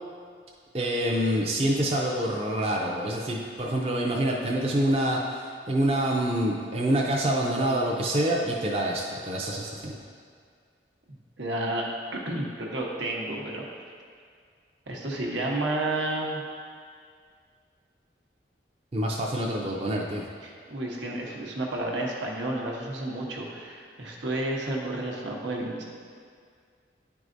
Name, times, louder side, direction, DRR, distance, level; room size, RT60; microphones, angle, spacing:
voice 1, 0.7-10.0 18.9-20.2, right 1 dB, 30° right, -2 dB, 0.5 m, -26 dB
voice 2, 11.4-11.9 12.1-13.7 14.9-16.4 20.4-25.8, right 1 dB, 85° right, -2 dB, 1.0 m, -31 dB
9.9 x 4.7 x 2.6 m, 2.1 s
head